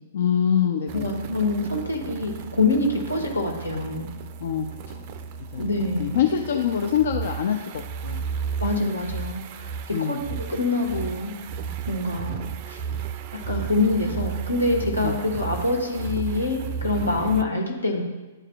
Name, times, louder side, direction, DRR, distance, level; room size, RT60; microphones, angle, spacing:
voice 1, 0.1-1.1 4.4-4.7 4.9-5.1 5.5-5.7 6.0-8.2 9.9-10.2 15.0-15.1, left 8 dB, 55° left, 4 dB, 0.4 m, -24 dB
voice 2, 0.9-4.1 5.6-6.3 8.6-11.3 11.9-12.8 13.5-18.0, left 2 dB, 80° left, 0 dB, 1.4 m, -25 dB
sound 1, 0.9-17.4, right 7 dB, 40° right, 0.4 m, -34 dB
11.0 x 4.8 x 2.3 m, 1.2 s
figure-of-eight pair, 115°, 0 cm